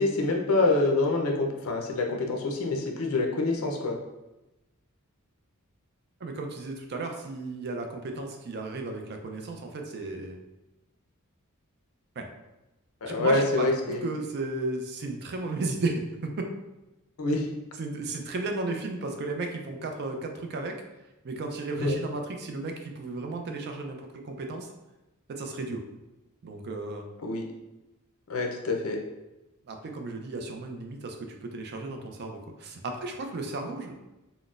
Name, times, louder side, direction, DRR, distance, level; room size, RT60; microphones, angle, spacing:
voice 1, 0.0-4.0 13.0-14.0 17.2-17.5 21.8-22.0 27.2-27.4 28.3-29.0, left 2 dB, 65° left, 2 dB, 0.5 m, -26 dB
voice 2, 6.2-10.4 12.2-12.3 13.0-16.3 17.8-20.7 21.2-24.7 25.3-25.8 26.4-27.1 29.7-34.0, right 2 dB, 50° right, 4 dB, 0.4 m, -34 dB
3.8 x 2.1 x 2.4 m, 0.99 s
head